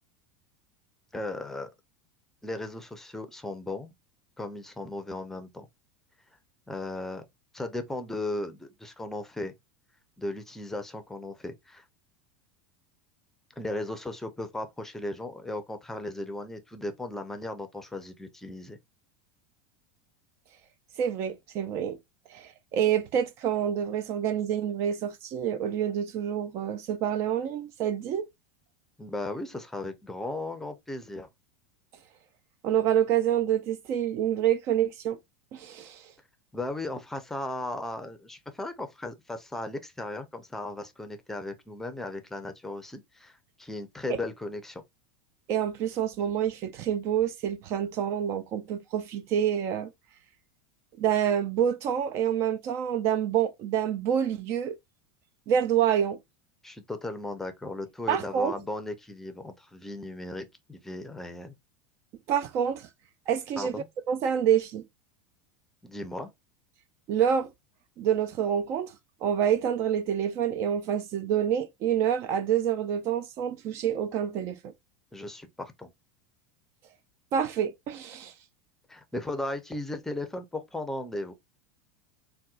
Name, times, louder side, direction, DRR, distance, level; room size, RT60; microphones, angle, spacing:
voice 1, 1.1-1.7 2.4-3.9 4.4-5.7 6.7-7.2 7.5-9.5 10.2-11.8 13.6-18.8 29.0-31.3 36.5-44.8 56.6-61.5 63.6-63.9 65.8-66.3 75.1-75.9 78.9-81.3, left 2 dB, 5° left, 0.6 m, -36 dB
voice 2, 21.0-22.0 22.3-28.3 32.6-35.2 35.5-36.1 44.1-44.2 45.5-49.9 51.0-54.8 55.5-56.2 58.1-58.5 62.3-62.9 63.3-63.8 64.1-64.8 67.1-67.5 68.0-68.9 69.2-74.7 77.3-78.3, right 9 dB, 45° right, 0.4 m, -27 dB
4.1 x 2.2 x 2.4 m
supercardioid pair, 135°, 7 cm